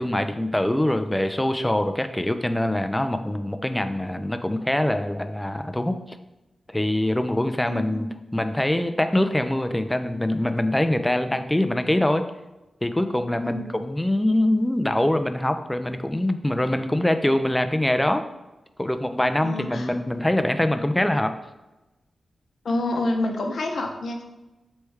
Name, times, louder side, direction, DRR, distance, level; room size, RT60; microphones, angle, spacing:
voice 1, 0.0-6.2 6.7-12.2 12.8-18.3 18.8-21.3, left 1 dB, 10° left, 8 dB, 0.3 m, -24 dB
voice 2, 7.7-8.1 13.4-13.7 19.4-19.9 22.6-24.2, left 2 dB, 70° left, 3 dB, 0.6 m, -28 dB
3.3 x 3.1 x 4.7 m, 1.0 s
wide cardioid pair, 100°, 0 cm